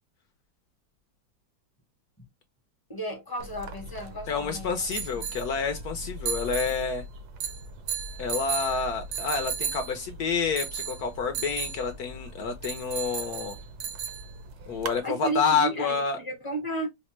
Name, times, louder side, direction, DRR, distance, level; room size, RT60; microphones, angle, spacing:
voice 1, 2.9-4.7 5.1-5.2 15.0-16.9, right 2 dB, 20° left, 0.7 m, -33 dB
sound 1, 3.4-15.0, right 5 dB, 70° right, 1.0 m, -36 dB
voice 2, 4.3-7.0 8.2-13.6 14.7-16.2, left 5 dB, 70° left, 1.0 m, -28 dB
5.0 x 2.1 x 2.9 m
omnidirectional pair, 2.1 m